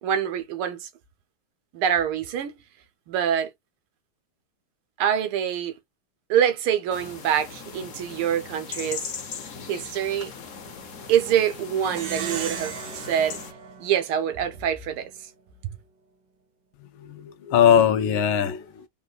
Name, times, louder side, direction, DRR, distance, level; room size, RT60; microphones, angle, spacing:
voice 1, 0.0-0.9 1.7-2.5 3.1-3.5 5.0-5.7 6.3-9.1 9.7-10.3 11.1-13.4 13.8-15.1, right 9 dB, 80° right, 1.8 m, -25 dB
sound 1, 6.9-13.5, left 6 dB, 50° left, 1.1 m, -39 dB
Plucked string instrument, 11.8-14.6, right 6 dB, 65° right, 1.4 m, -36 dB
voice 2, 16.8-18.9, left 8 dB, 70° left, 1.4 m, -21 dB
4.1 x 3.9 x 2.4 m
omnidirectional pair, 2.4 m